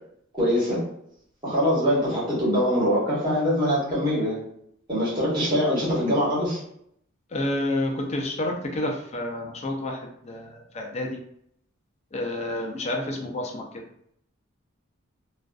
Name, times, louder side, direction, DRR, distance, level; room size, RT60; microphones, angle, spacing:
voice 1, 0.3-0.8 1.4-4.4 4.9-6.6, equal, 25° right, -8 dB, 1.2 m, -23 dB
voice 2, 7.3-11.2 12.1-13.8, left 1 dB, 35° left, 2 dB, 0.4 m, -29 dB
2.5 x 2.3 x 2.2 m, 0.70 s
head